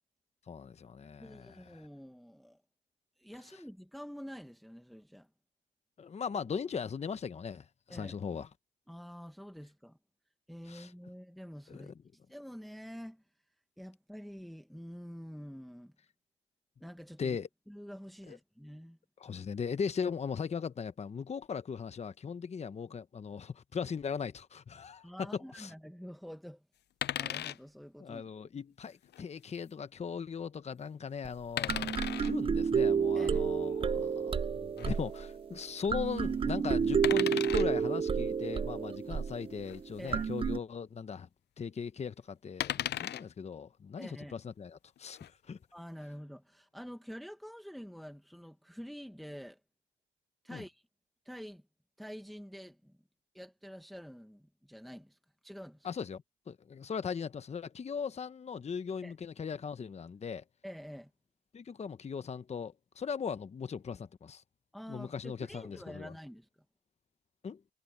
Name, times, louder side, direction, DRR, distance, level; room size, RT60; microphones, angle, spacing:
voice 1, 0.5-1.9 3.5-3.6 6.0-8.5 10.7-10.9 11.7-11.9 17.2-17.5 18.3-18.4 19.2-25.7 28.0-41.3 41.6-45.6 50.5-50.6 55.8-60.4 61.5-64.4 64.9-66.1 67.4-67.6, left 6 dB, 35° left, 0.9 m, -39 dB
voice 2, 1.2-2.6 3.2-5.3 7.9-8.2 8.9-10.0 10.5-11.9 12.3-13.2 13.8-15.9 16.8-17.4 17.7-19.0 25.0-26.6 27.1-28.2 33.1-33.5 40.0-40.4 44.0-44.3 45.7-49.6 50.4-50.8 51.2-51.6 52.0-53.0 53.3-55.9 59.0-59.1 60.6-61.1 64.7-66.5, equal, ahead, 1.3 m, -47 dB
sound 1, 27.0-27.6 29.0-29.2 31.6-32.3 34.8-34.9 37.0-37.7 39.7-39.8 40.1-40.2 42.6-43.3 45.0-45.3, left 12 dB, 60° left, 0.5 m, -35 dB
sound 2, 31.3-31.4 31.7-40.6, right 6 dB, 25° right, 0.5 m, -30 dB
cardioid pair, 90°, 20 cm